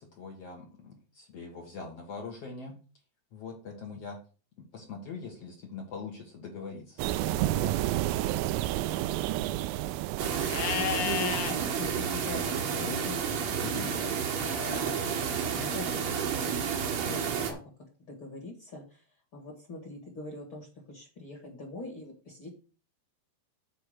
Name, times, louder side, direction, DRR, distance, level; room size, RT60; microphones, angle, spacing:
voice 1, 0.0-2.8 3.3-4.2 4.6-8.4 13.6-13.9, left 4 dB, 55° left, 1 dB, 1.8 m, -43 dB
sound 1, 7.0-11.9, right 14 dB, 80° right, 2.1 m, -31 dB
sound 2, 10.2-17.5, right 7 dB, 65° right, 1.8 m, -31 dB
Livestock farm animals working animals, 10.5-11.5 14.4-15.3, left 11 dB, 80° left, 2.7 m, -34 dB
voice 2, 10.7-14.1 14.6-17.6 18.0-19.0 19.3-22.5, left 1 dB, 40° left, 1 dB, 2.0 m, -42 dB
8.3 x 4.6 x 6.5 m, 0.35 s
omnidirectional pair, 4.6 m